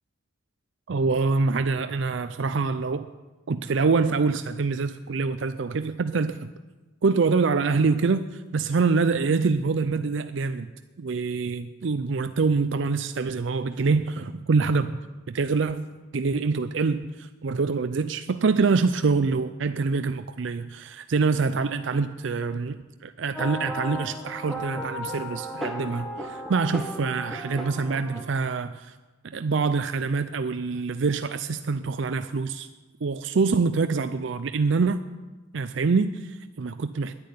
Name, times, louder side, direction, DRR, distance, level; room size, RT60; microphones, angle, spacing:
voice 1, 0.9-3.1 3.5-6.5 7.0-10.7 11.0-15.0 15.3-15.9 16.1-28.9 29.2-32.7 33.0-35.0 35.5-37.2, right 4 dB, 65° right, 0.5 m, -25 dB
sound 1, 23.3-28.4, equal, ahead, 1.6 m, -35 dB
10.5 x 10.5 x 9.6 m
head